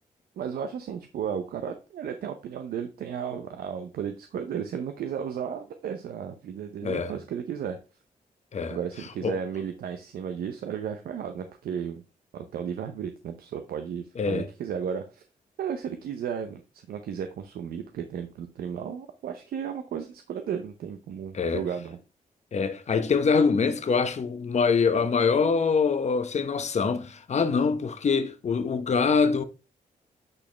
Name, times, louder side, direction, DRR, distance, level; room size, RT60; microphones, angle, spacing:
voice 1, 0.4-7.8 8.7-12.0 12.3-15.2 15.6-22.0, right 8 dB, 85° right, 0.7 m, -34 dB
voice 2, 6.8-7.1 8.5-8.8 9.2-9.4 14.2-14.5 21.3-21.6 22.5-29.4, left 5 dB, 50° left, 0.9 m, -24 dB
8.8 x 4.2 x 3.3 m
cardioid pair, 80°, 15 cm